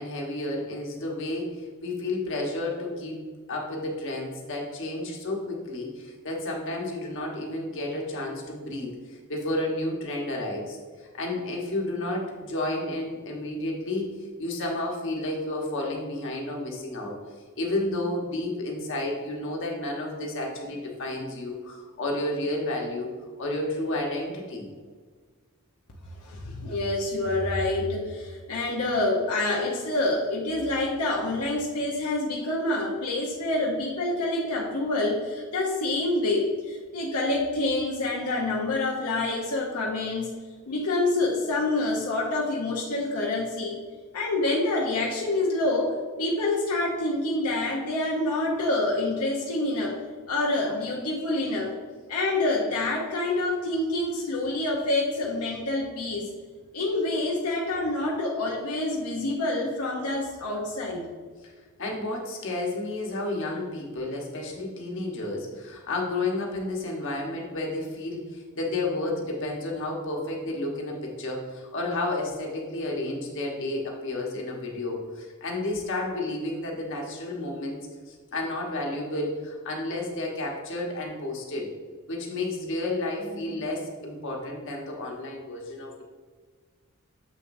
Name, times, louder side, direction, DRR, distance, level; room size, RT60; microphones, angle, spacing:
voice 1, 0.0-14.1 14.4-17.1 17.6-23.1 23.4-24.7 61.4-61.5 61.8-77.8 78.1-81.7 82.1-86.0, left 2 dB, 60° left, 0 dB, 1.2 m, -31 dB
voice 2, 26.2-40.3 40.7-43.8 44.1-50.0 50.3-51.7 52.1-56.3 56.7-61.1, left 2 dB, 85° left, -2 dB, 0.9 m, -27 dB
7.1 x 6.3 x 2.6 m, 1.5 s
head